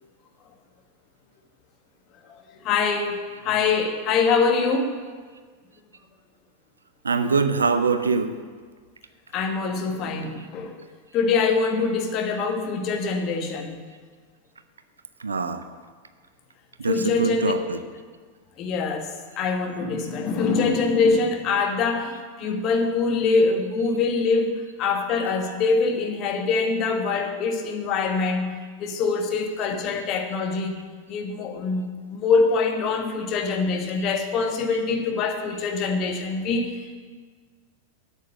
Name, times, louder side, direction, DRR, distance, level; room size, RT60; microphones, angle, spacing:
voice 1, 2.3-4.9 9.3-10.8 11.1-13.8 16.8-17.5 18.6-30.7 31.1-36.9, left 4 dB, 35° left, 4 dB, 1.3 m, -24 dB
voice 2, 7.0-8.3 15.2-15.6 16.8-17.8, right 4 dB, 75° right, 10 dB, 0.6 m, -23 dB
8.5 x 7.2 x 7.4 m, 1.6 s
figure-of-eight pair, 90°, 0 cm